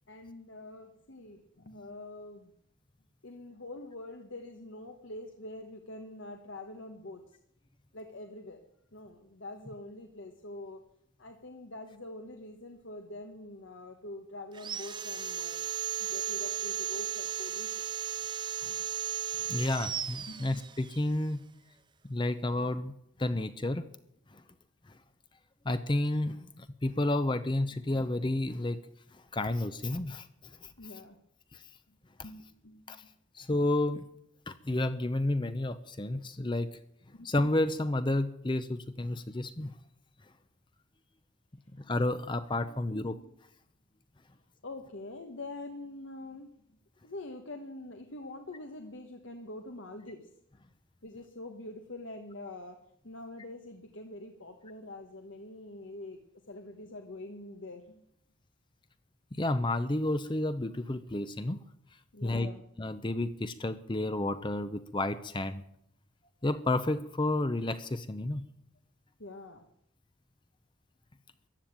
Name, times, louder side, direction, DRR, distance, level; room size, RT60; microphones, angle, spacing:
voice 1, 0.1-2.5 3.2-7.2 7.9-8.6 8.9-10.8 11.2-15.6 16.0-17.9 20.3-20.5 30.8-31.2 32.2-33.1 37.1-37.3 44.6-46.5 47.0-50.3 51.0-56.2 56.5-58.0 62.1-62.6 69.2-69.6, left 2 dB, 80° left, 5 dB, 1.4 m, -45 dB
Sawing, 14.5-21.0, right 9 dB, 25° right, 0.6 m, -35 dB
voice 2, 19.4-21.4 22.1-22.9 23.2-23.9 24.3-24.4 25.6-28.8 29.3-30.3 30.6-30.7 31.5-31.6 32.9-33.0 33.3-34.1 34.5-36.7 37.2-39.7 41.8-43.2 59.3-61.6 62.2-62.5 62.8-65.6 66.4-68.4, left 2 dB, 25° left, 11 dB, 0.6 m, -31 dB
15.0 x 11.0 x 8.8 m, 0.75 s
head